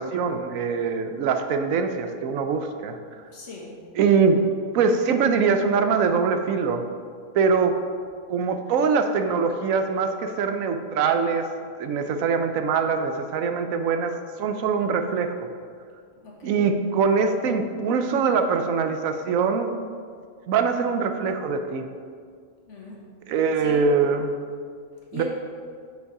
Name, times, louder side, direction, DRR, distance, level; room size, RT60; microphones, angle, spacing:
voice 1, 0.0-3.0 4.0-4.4 4.7-6.8 7.3-7.8 8.3-11.5 11.8-14.1 14.4-15.5 16.4-19.8 20.5-21.9 23.3-24.3 25.1-25.2, right 5 dB, 85° right, 7 dB, 1.1 m, -23 dB
voice 2, 3.3-3.8 16.1-16.7 22.7-23.1 23.6-23.8 25.1-25.2, left 3 dB, 65° left, -3 dB, 1.7 m, -40 dB
8.1 x 5.2 x 4.8 m, 2.1 s
omnidirectional pair, 1.4 m